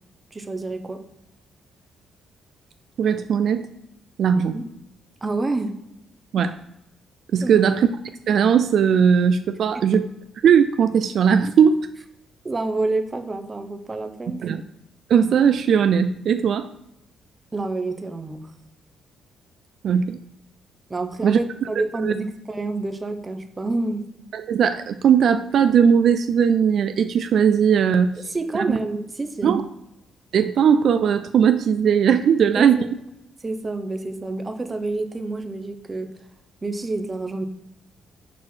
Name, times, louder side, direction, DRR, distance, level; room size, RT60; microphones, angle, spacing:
voice 1, 0.3-1.0 4.4-4.7 5.2-5.7 7.4-7.6 9.7-9.8 12.4-14.5 17.5-18.4 20.9-24.1 28.3-29.6 32.6-32.9 33.4-36.1 36.6-37.4, right 2 dB, 20° right, 7 dB, 0.6 m, -28 dB
voice 2, 3.0-3.7 4.2-4.6 6.3-6.6 7.3-7.9 8.3-10.1 10.4-11.9 14.4-14.6 15.1-16.7 19.8-20.2 21.2-21.4 22.0-22.1 24.3-28.3 28.7-28.8 29.4-29.6 30.3-32.8, right 7 dB, 60° right, 9 dB, 0.3 m, -18 dB
6.2 x 4.4 x 4.3 m, 0.86 s
cardioid pair, 125°, 0 cm